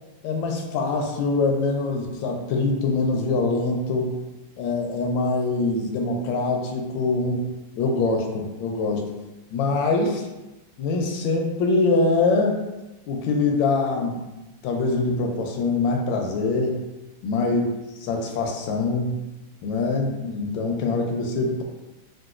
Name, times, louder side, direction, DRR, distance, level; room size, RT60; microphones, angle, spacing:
voice 1, 0.2-4.2 4.6-9.1 9.5-10.3 10.8-12.6 13.1-14.3 14.6-16.8 17.2-17.6 18.0-19.2 19.6-21.6, left 3 dB, 75° left, 2 dB, 1.2 m, -24 dB
3.8 x 2.3 x 2.4 m, 1.0 s
omnidirectional pair, 2.3 m